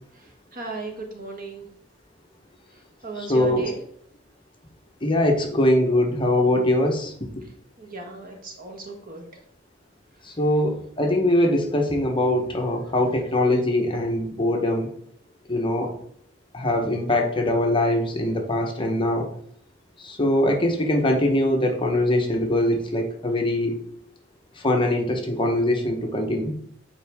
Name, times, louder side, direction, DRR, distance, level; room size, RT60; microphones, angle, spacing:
voice 1, 0.1-1.7 2.7-3.8 7.4-7.5 7.8-9.4, right 3 dB, 50° right, 2 dB, 1.4 m, -37 dB
voice 2, 3.3-3.7 5.0-7.1 10.2-14.9 15.5-15.9 16.5-19.3 20.0-23.8 24.6-26.5, left 1 dB, 25° left, 2 dB, 1.0 m, -22 dB
7.7 x 4.7 x 3.5 m, 0.65 s
head